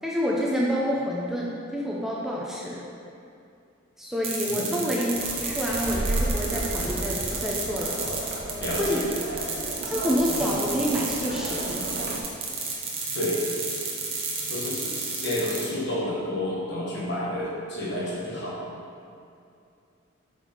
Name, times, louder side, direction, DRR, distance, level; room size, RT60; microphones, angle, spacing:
voice 1, 0.0-2.9 4.0-7.9 8.8-9.1 9.9-12.2, equal, ahead, -5 dB, 0.6 m, -28 dB
sound 1, 4.2-15.7, right 4 dB, 25° right, 1.0 m, -32 dB
voice 2, 4.5-4.9 8.6-9.1 13.1-13.4 14.5-18.6, left 1 dB, 55° left, -6 dB, 1.8 m, -30 dB
sound 2, 5.1-12.2, right 1 dB, 45° right, 0.6 m, -33 dB
8.0 x 5.2 x 3.8 m, 2.5 s
head